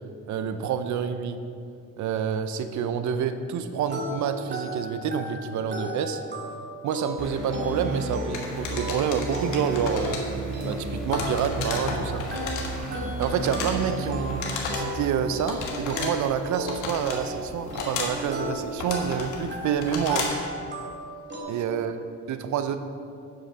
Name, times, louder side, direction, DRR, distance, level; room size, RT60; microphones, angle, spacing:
voice 1, 0.3-1.4 2.0-6.2 6.8-10.2 10.6-14.4 14.7-20.3 21.5-22.0 22.3-22.8, right 7 dB, 70° right, 9 dB, 0.6 m, -28 dB
sound 1, 3.9-21.4, equal, 35° right, 2.0 m, -36 dB
sound 2, 7.2-14.7, right 2 dB, ahead, 2.4 m, -34 dB
sound 3, 8.3-20.5, left 4 dB, 90° left, 1.4 m, -35 dB
7.5 x 6.9 x 5.2 m, 2.4 s
cardioid pair, 90°, 30 cm